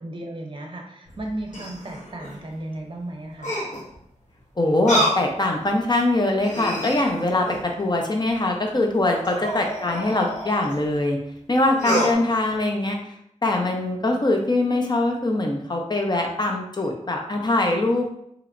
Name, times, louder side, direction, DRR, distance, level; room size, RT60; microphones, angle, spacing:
voice 1, 0.0-3.6 9.4-9.5 12.1-12.2, right 1 dB, 40° right, 1 dB, 0.7 m, -35 dB
sound 1, 1.0-2.4 3.4-3.9 4.8-5.2 5.8-5.9 6.4-7.7 9.2-10.8 11.8-12.1, equal, 75° left, 1.0 m, -28 dB
voice 2, 4.6-11.2 11.5-13.0 13.4-18.1, left 2 dB, 35° left, 2 dB, 0.6 m, -22 dB
3.1 x 2.9 x 2.5 m, 0.74 s
wide cardioid pair, 70°, 13 cm